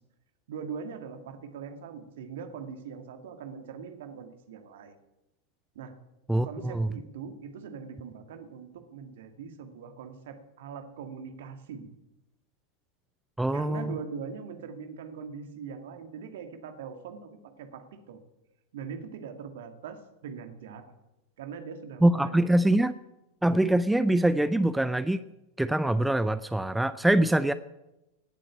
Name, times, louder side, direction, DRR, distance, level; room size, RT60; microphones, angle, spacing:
voice 1, 0.5-4.9 5.7-5.9 6.4-11.9 13.5-18.2 18.7-20.9 21.4-22.6, right 6 dB, 55° right, 7 dB, 2.1 m, -41 dB
voice 2, 6.3-6.9 13.4-14.0 22.0-22.9 23.4-25.2 25.6-27.5, right 1 dB, 5° right, 14 dB, 0.5 m, -24 dB
18.0 x 7.7 x 9.1 m, 0.94 s
figure-of-eight pair, 90°, 0 cm